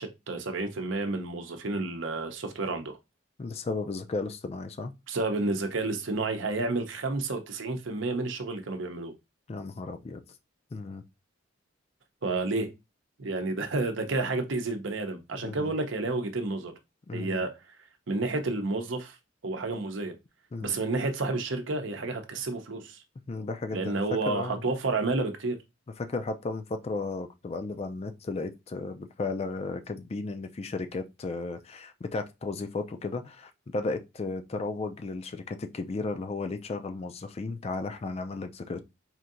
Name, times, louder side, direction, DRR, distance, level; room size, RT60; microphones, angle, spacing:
voice 1, 0.0-3.0 5.1-9.1 12.2-12.7 13.2-16.7 17.1-17.5 18.1-19.1 19.4-20.1 20.6-23.0 23.7-25.6, right 3 dB, 75° right, 0.7 m, -30 dB
voice 2, 3.4-4.9 9.5-10.2 10.7-11.0 15.3-15.7 17.1-17.4 20.5-20.8 23.3-24.6 26.0-38.8, left 3 dB, 30° left, 0.4 m, -34 dB
4.3 x 2.7 x 2.5 m
head